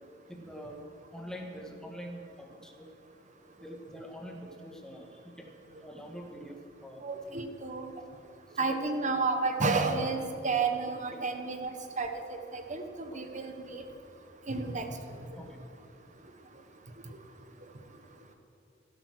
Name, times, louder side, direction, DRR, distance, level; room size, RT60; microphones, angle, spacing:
voice 1, 0.3-0.8 1.1-2.9 3.6-6.5 6.8-7.0 8.5-8.9 11.1-11.2 15.3-15.6, equal, 5° left, 1 dB, 1.9 m, -45 dB
voice 2, 7.0-7.9 8.6-11.7 12.0-13.8 14.5-15.2, right 4 dB, 40° right, 6 dB, 1.3 m, -31 dB
13.5 x 12.5 x 6.5 m, 2.6 s
head